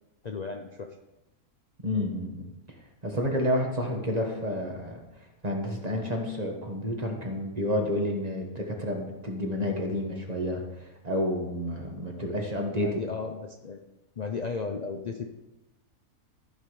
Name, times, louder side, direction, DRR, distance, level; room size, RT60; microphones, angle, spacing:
voice 1, 0.2-1.0 12.1-12.2 12.8-13.8 14.2-15.2, left 4 dB, 65° left, 3 dB, 0.4 m, -35 dB
voice 2, 1.8-2.5 3.0-5.0 5.4-13.0, equal, 25° right, 1 dB, 1.5 m, -30 dB
14.0 x 5.7 x 4.9 m, 0.98 s
omnidirectional pair, 1.7 m